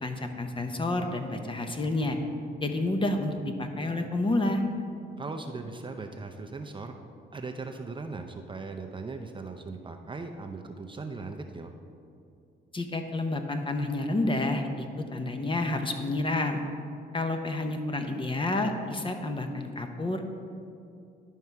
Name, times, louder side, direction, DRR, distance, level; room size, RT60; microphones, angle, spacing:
voice 1, 0.0-2.2 2.6-4.6 12.7-16.6 17.1-20.3, left 2 dB, 25° left, 5 dB, 0.9 m, -29 dB
voice 2, 5.2-7.0 7.3-11.7, right 3 dB, 25° right, 4 dB, 0.6 m, -39 dB
11.0 x 5.5 x 4.7 m, 2.5 s
cardioid pair, 90°, 20 cm